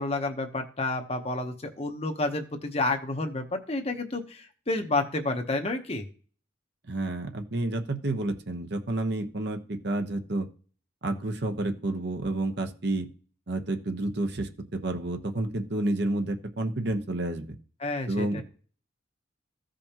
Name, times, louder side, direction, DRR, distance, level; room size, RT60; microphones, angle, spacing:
voice 1, 0.0-6.1 17.8-18.4, left 2 dB, 30° left, 6 dB, 0.9 m, -30 dB
voice 2, 6.9-10.5 11.0-13.1 13.5-17.5 18.1-18.4, right 2 dB, 60° right, 5 dB, 1.0 m, -30 dB
15.0 x 5.1 x 2.9 m, 0.42 s
head